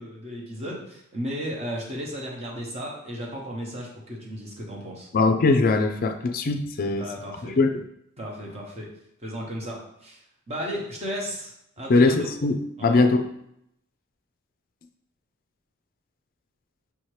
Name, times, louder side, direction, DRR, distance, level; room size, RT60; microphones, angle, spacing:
voice 1, 0.0-5.1 6.8-7.6 8.2-8.9 9.2-10.2 10.5-12.3 12.8-13.1, equal, 30° right, -2 dB, 1.0 m, -35 dB
voice 2, 5.1-7.1 7.6-7.8 11.9-13.2, left 3 dB, 45° left, 7 dB, 0.4 m, -21 dB
5.6 x 2.8 x 3.1 m, 0.76 s
head